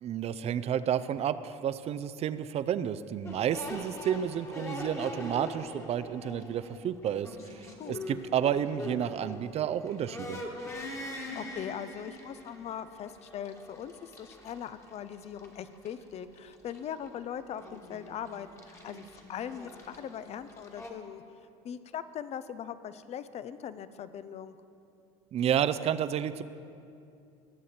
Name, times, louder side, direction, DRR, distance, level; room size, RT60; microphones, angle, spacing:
voice 1, 0.0-10.4 25.3-26.4, right 9 dB, 40° right, 14 dB, 0.5 m, -31 dB
sound 1, 3.2-20.9, left 1 dB, 15° left, 1.6 m, -43 dB
voice 2, 11.1-21.2 21.6-24.6, left 9 dB, 40° left, 14 dB, 0.6 m, -40 dB
19.0 x 7.2 x 4.3 m, 2.6 s
supercardioid pair, 95°, 16 cm